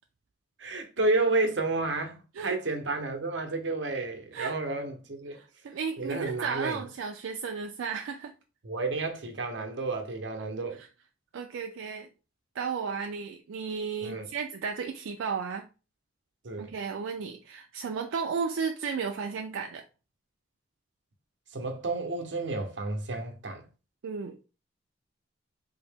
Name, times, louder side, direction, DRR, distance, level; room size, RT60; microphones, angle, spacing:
voice 1, 0.6-5.4 6.0-6.8 8.6-10.8 14.0-14.3 16.4-16.7 21.5-23.7, right 3 dB, 70° right, 0.8 m, -31 dB
voice 2, 5.3-8.3 10.8-10.9 11.3-12.1 12.6-15.7 16.6-19.8 24.0-24.4, right 5 dB, 85° right, 0.4 m, -34 dB
3.7 x 2.0 x 3.5 m
head